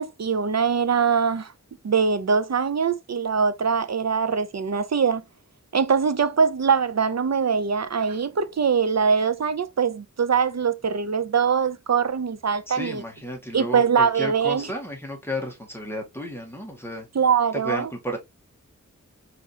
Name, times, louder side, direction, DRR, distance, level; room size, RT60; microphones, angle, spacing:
voice 1, 0.0-1.5 1.8-5.2 5.7-13.0 13.5-14.7 17.2-17.9, right 6 dB, 60° right, 0.7 m, -22 dB
voice 2, 12.7-17.1 17.5-18.2, equal, 5° left, 2.0 m, -33 dB
4.9 x 3.7 x 2.9 m
wide cardioid pair, 80°, 31 cm